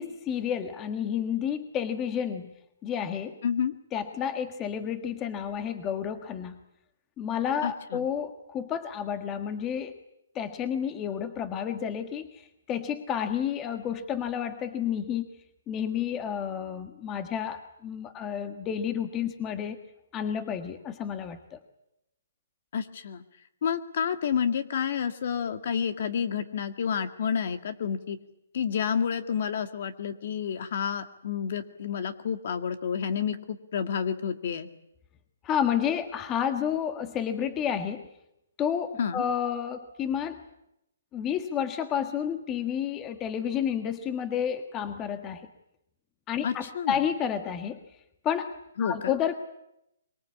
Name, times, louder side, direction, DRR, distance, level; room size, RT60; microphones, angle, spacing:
voice 1, 0.0-2.5 2.8-3.4 3.9-6.6 7.2-9.9 10.3-12.4 12.7-15.3 15.7-19.8 20.1-21.6 35.4-38.1 38.6-40.4 41.1-45.5 46.3-47.8 48.2-48.5 48.8-49.3, left 8 dB, 20° left, 8 dB, 1.6 m, -30 dB
voice 2, 3.4-3.7 7.6-8.1 22.7-23.2 23.6-28.2 28.5-34.7 39.0-39.2 46.4-47.0 48.8-49.1, left 7 dB, 55° left, 9 dB, 1.9 m, -29 dB
24.0 x 22.0 x 8.6 m, 0.83 s
hypercardioid pair, 155°, 0 cm